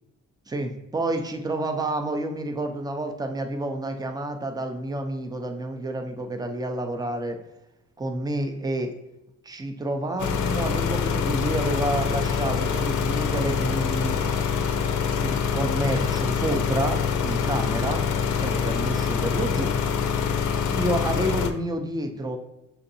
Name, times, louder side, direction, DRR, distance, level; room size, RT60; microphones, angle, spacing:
voice 1, 0.5-7.4 8.0-8.9 9.4-14.3 15.2-19.7 20.7-22.4, right 1 dB, 15° right, 5 dB, 0.5 m, -29 dB
sound 1, 10.2-21.5, left 6 dB, 75° left, 0.5 m, -25 dB
6.6 x 2.6 x 2.6 m, 0.90 s
cardioid pair, 90°, 30 cm